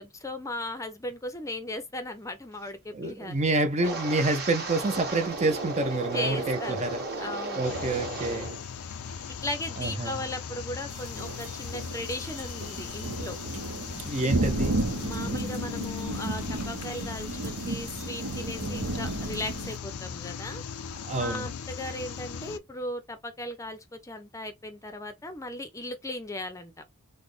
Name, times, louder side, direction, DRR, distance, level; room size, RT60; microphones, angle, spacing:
voice 1, 0.0-3.4 6.1-6.9 7.2-7.7 9.4-13.4 15.0-20.6 21.1-26.7, left 1 dB, 15° left, 0.5 m, -37 dB
voice 2, 2.9-7.0 7.6-8.5 9.8-10.1 13.9-14.8 21.1-21.5, right 2 dB, 30° right, 0.5 m, -28 dB
Wind, 3.8-8.6 8.9-9.3 9.8-10.0, right 2 dB, 50° right, 1.6 m, -34 dB
sound 1, 7.6-22.6, left 6 dB, 85° left, 0.5 m, -38 dB
sound 2, 10.9-19.8, right 2 dB, 80° right, 0.8 m, -33 dB
4.0 x 2.1 x 3.2 m
head